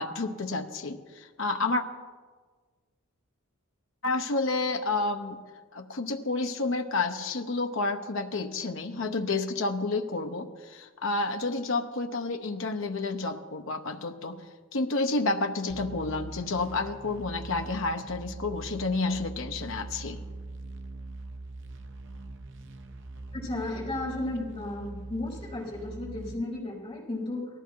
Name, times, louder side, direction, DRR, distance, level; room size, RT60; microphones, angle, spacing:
voice 1, 0.0-1.8 4.0-5.4 5.7-14.4 14.7-20.2, left 3 dB, 65° left, 5 dB, 0.8 m, -30 dB
sound 1, 15.7-26.4, right 2 dB, 55° right, 0.8 m, -42 dB
voice 2, 23.3-27.5, left 2 dB, 25° left, -5 dB, 4.3 m, -34 dB
18.0 x 14.0 x 4.6 m, 1.5 s
head